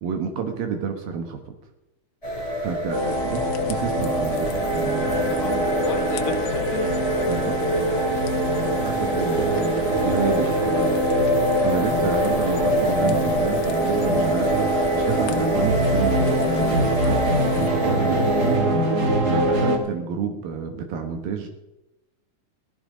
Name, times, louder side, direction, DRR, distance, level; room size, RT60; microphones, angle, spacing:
voice 1, 0.0-1.6 2.6-5.5 7.3-8.0 8.8-9.5 10.0-10.5 11.6-18.9 19.3-21.5, right 6 dB, 70° right, 6 dB, 3.0 m, -30 dB
sound 1, 2.2-18.6, equal, 10° left, 5.6 m, -26 dB
sound 2, 2.9-17.7, left 9 dB, 90° left, 2.8 m, -36 dB
sound 3, 2.9-19.8, right 1 dB, 35° right, 1.7 m, -24 dB
voice 2, 5.4-7.0 10.2-10.6, left 8 dB, 70° left, 8 dB, 1.9 m, -35 dB
17.5 x 13.0 x 5.1 m, 0.93 s
omnidirectional pair, 4.5 m